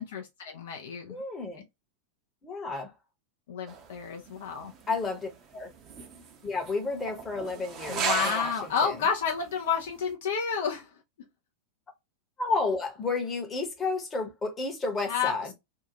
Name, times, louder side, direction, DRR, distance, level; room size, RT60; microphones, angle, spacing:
voice 1, 0.0-1.2 3.5-4.7 7.9-10.9 15.1-15.5, left 7 dB, 55° left, 0.5 m, -30 dB
voice 2, 1.1-1.6 2.4-2.9 4.9-5.7 6.4-9.1 12.4-15.5, left 3 dB, 20° left, 1.0 m, -31 dB
sound 1, 3.7-9.0 9.4-9.5 9.8-10.0, right 6 dB, 35° right, 0.7 m, -36 dB
2.7 x 2.4 x 2.8 m
figure-of-eight pair, 90°, 0 cm